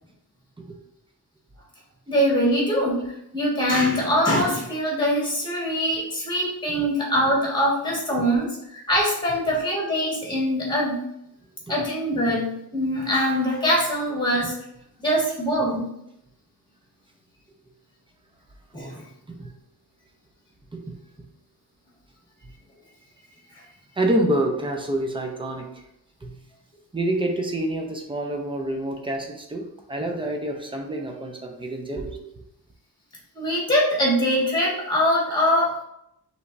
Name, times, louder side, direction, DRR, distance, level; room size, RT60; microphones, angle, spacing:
voice 1, 2.1-3.0 3.3-11.0 11.7-14.5 15.0-15.9 18.7-19.0 33.3-35.8, equal, 10° left, -5 dB, 1.7 m, -23 dB
voice 2, 24.0-25.7 26.2-26.3 26.9-32.2, right 1 dB, 15° right, 2 dB, 0.6 m, -27 dB
5.4 x 3.3 x 2.6 m, 0.79 s
wide cardioid pair, 160°, 39 cm